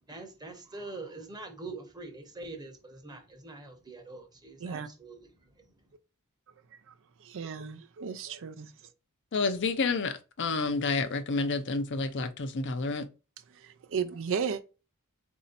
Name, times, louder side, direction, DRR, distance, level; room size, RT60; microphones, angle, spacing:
voice 1, 0.1-5.3, right 3 dB, 20° right, 0.9 m, -44 dB
voice 2, 7.2-8.7 13.5-14.6, right 6 dB, 60° right, 0.5 m, -34 dB
voice 3, 9.3-13.0, left 3 dB, 55° left, 0.6 m, -29 dB
4.2 x 2.7 x 4.0 m
head